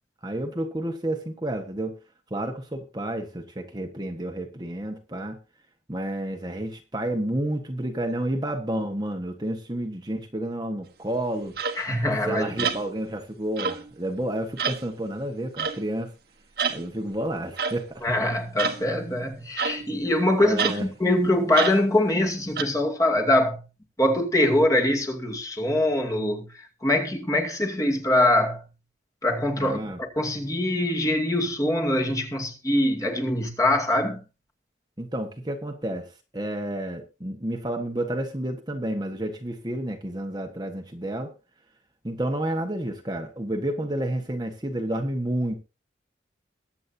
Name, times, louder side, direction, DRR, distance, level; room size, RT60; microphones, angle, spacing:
voice 1, 0.2-1.9 2.3-5.4 5.9-11.5 12.0-16.1 16.7-18.0 20.4-20.9 29.6-30.0 35.0-41.3 42.0-45.6, right 1 dB, 20° right, 1.4 m, -30 dB
sound 1, 11.6-11.8 12.6-12.8 13.6-13.9 14.6-14.8 15.6-15.8 16.6-16.8 17.6-17.8 18.6-18.8 19.6-20.0 20.6-20.8 21.6-21.8 22.6-22.7, right 6 dB, 55° right, 1.5 m, -27 dB
voice 2, 11.8-12.7 18.0-23.6 24.0-26.5 26.8-28.6 29.2-34.2, left 1 dB, 20° left, 2.4 m, -23 dB
22.0 x 8.5 x 2.8 m
head